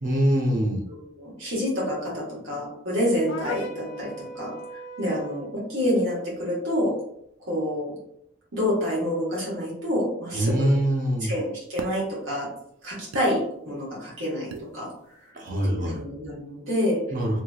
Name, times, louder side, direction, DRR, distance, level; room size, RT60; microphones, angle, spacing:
voice 1, 0.0-0.8 10.3-11.3 15.3-16.0 17.1-17.4, equal, 40° right, 0 dB, 0.6 m, -23 dB
voice 2, 0.9-4.5 5.0-6.9 7.5-7.9 8.5-10.8 11.2-12.5 12.8-14.9 15.6-17.0, equal, 60° right, -6 dB, 1.4 m, -28 dB
sound 1, 3.3-5.5, left 1 dB, 65° left, 0.5 m, -37 dB
sound 2, 10.5-10.6 11.8-12.0 13.1-13.3 14.5-14.7, right 4 dB, 85° right, 0.3 m, -36 dB
3.0 x 2.8 x 2.3 m, 0.75 s
head